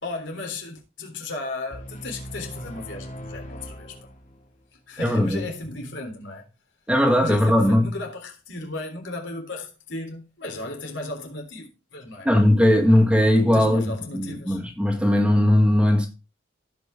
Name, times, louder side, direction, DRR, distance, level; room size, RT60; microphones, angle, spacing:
voice 1, 0.0-4.1 4.9-6.5 7.2-12.3 13.5-14.6, left 2 dB, 70° left, 3.6 m, -35 dB
sound 1, 1.7-4.7, equal, 40° left, 2.5 m, -40 dB
voice 2, 5.0-5.4 6.9-8.0 12.2-16.1, left 1 dB, 5° right, 1.9 m, -19 dB
17.0 x 5.7 x 3.7 m
head